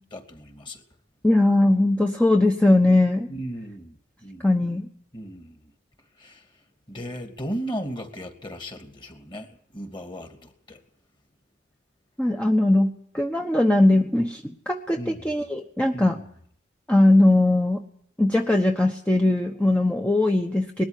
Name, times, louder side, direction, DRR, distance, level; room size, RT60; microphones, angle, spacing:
voice 1, 0.1-0.8 3.3-4.5 5.1-5.6 6.2-6.4 6.9-10.8 15.0-15.3 15.9-16.2, equal, 25° left, 2.7 m, -36 dB
voice 2, 1.2-3.3 4.4-4.9 12.2-16.2 16.9-17.8 18.2-20.8, left 1 dB, 5° left, 1.1 m, -20 dB
20.5 x 13.0 x 9.9 m
head